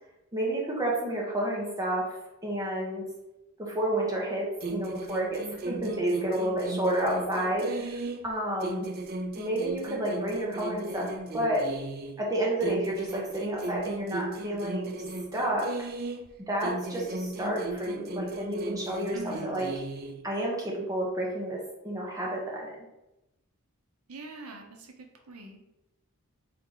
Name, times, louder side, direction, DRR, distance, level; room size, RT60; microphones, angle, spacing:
voice 1, 0.3-2.1 2.4-3.0 3.6-8.9 9.4-11.1 11.3-11.7 12.2-14.9 15.3-15.7 16.5-19.7 20.2-22.7, right 1 dB, 15° right, -4 dB, 1.1 m, -30 dB
sound 1, 4.6-8.3 8.6-12.2 12.6-16.3 16.6-20.2, right 2 dB, 45° right, 0.4 m, -36 dB
voice 2, 7.7-8.1 19.1-19.6 24.1-25.7, right 3 dB, 80° right, 3 dB, 0.8 m, -44 dB
3.5 x 3.3 x 3.9 m, 0.93 s
head